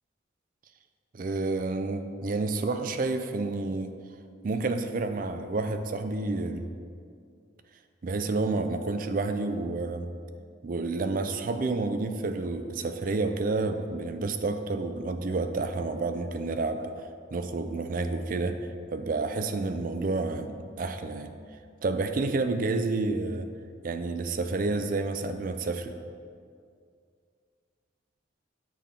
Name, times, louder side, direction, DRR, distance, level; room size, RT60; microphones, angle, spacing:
voice 1, 1.1-3.9 4.4-6.7 8.0-10.1 10.6-16.9 17.3-21.3 21.8-23.5 23.8-25.9, right 3 dB, 45° right, 8 dB, 0.4 m, -29 dB
8.3 x 3.6 x 5.7 m, 2.3 s
head